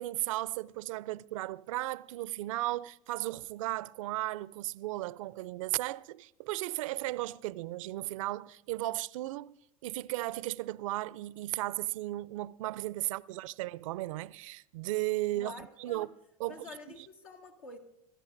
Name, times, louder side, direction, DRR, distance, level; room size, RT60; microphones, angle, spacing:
voice 1, 0.0-9.6 9.8-16.1 16.4-17.1, right 17 dB, 70° right, 0.4 m, -35 dB
voice 2, 15.3-16.1 16.5-17.8, left 3 dB, 80° left, 2.0 m, -48 dB
27.5 x 13.5 x 2.6 m
hypercardioid pair, 85°, 18 cm